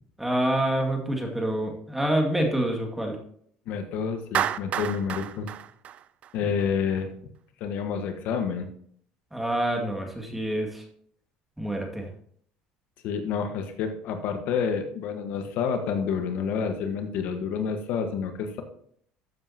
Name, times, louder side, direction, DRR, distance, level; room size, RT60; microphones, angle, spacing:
voice 1, 0.2-3.2 6.4-6.5 9.3-10.8 11.6-12.1, right 1 dB, 5° right, 2 dB, 2.1 m, -27 dB
voice 2, 3.7-5.5 6.3-7.1 7.6-8.7 13.0-18.6, left 6 dB, 65° left, 6 dB, 1.4 m, -29 dB
Clapping, 4.3-6.6, right 10 dB, 45° right, 0.4 m, -30 dB
13.5 x 7.4 x 2.9 m, 0.63 s
cardioid pair, 115°, 3 cm